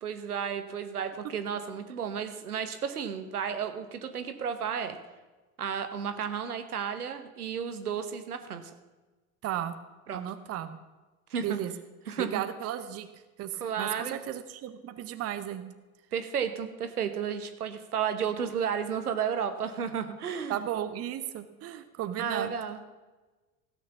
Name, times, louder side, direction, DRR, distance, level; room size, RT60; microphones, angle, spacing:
voice 1, 0.0-5.0 5.6-8.7 10.1-10.2 11.3-11.6 12.1-12.4 13.6-14.2 16.1-20.6 22.2-22.9, right 7 dB, 75° right, 9 dB, 1.2 m, -33 dB
voice 2, 9.4-9.7 10.1-10.8 11.4-11.7 12.2-13.1 13.4-15.7 20.5-22.5, right 11 dB, 35° right, 10 dB, 0.9 m, -34 dB
16.0 x 6.5 x 7.0 m, 1.2 s
figure-of-eight pair, 70°, 45 cm